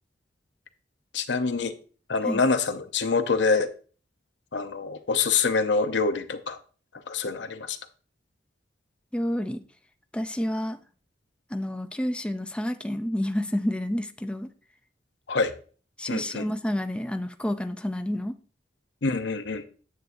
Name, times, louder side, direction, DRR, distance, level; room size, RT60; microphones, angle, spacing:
voice 1, 1.1-1.7 2.1-3.7 4.5-6.6 6.9-7.8 15.3-15.5 16.1-16.4 19.0-19.6, left 4 dB, 85° left, 0.8 m, -25 dB
voice 2, 9.1-9.6 10.1-10.8 11.5-14.5 16.0-18.3, left 1 dB, 5° left, 0.5 m, -29 dB
9.6 x 7.8 x 2.6 m
head